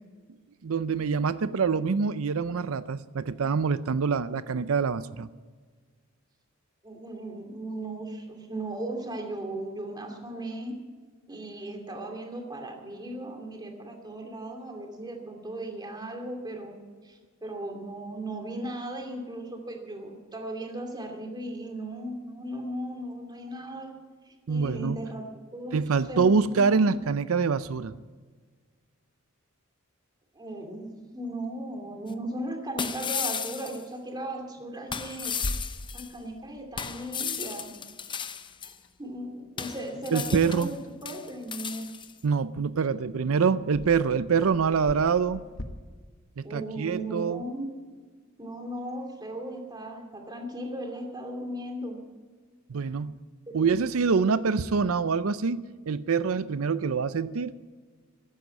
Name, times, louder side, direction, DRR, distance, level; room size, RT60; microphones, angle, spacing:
voice 1, 0.6-5.3 24.5-25.0 25.7-27.9 40.1-40.7 42.2-45.4 46.4-47.4 52.7-53.1 53.5-57.5, right 5 dB, 90° right, 14 dB, 0.5 m, -25 dB
voice 2, 6.8-10.8 11.3-16.7 17.0-23.9 24.3-25.2 25.5-25.8 26.1-26.2 26.5-27.0 30.3-35.3 35.9-37.7 38.6-38.7 39.0-41.8 46.4-47.7 48.4-52.0 53.5-53.7 54.2-54.6, right 1 dB, 20° right, 2 dB, 2.7 m, -37 dB
sound 1, 32.1-32.2 32.8-33.8 34.9-36.1 36.8-38.7 39.6-40.8 41.0-42.1, left 7 dB, 25° left, 0.6 m, -35 dB
Clock, 35.2-45.6, left 1 dB, 70° left, 1.3 m, -44 dB
14.5 x 10.0 x 8.4 m, 1.5 s
head